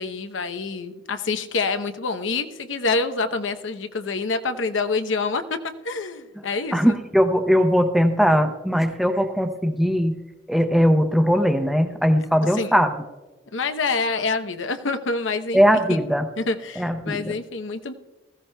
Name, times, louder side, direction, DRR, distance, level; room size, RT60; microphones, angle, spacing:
voice 1, 0.0-7.0 12.5-12.8 13.5-15.6 15.9-16.0 16.4-17.9, left 3 dB, 85° left, 8 dB, 0.8 m, -27 dB
voice 2, 6.7-10.2 10.5-12.9 15.5-16.3 16.8-17.3, equal, ahead, 6 dB, 0.6 m, -19 dB
20.0 x 15.0 x 2.2 m, 1.2 s
head